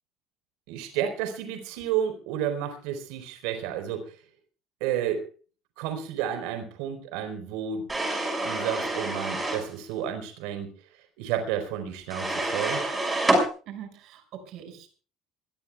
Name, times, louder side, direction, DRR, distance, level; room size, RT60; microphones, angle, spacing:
voice 1, 0.7-4.1 4.8-5.3 5.8-7.8 8.4-10.7 11.2-12.9, right 9 dB, 90° right, 6 dB, 4.4 m, -31 dB
sound 1, 7.9-9.7 12.1-13.5, right 2 dB, 10° right, 6.0 m, -27 dB
voice 2, 13.7-15.0, right 9 dB, 50° right, 7 dB, 6.1 m, -43 dB
25.5 x 21.0 x 2.4 m, 0.39 s
cardioid pair, 170°, 0 cm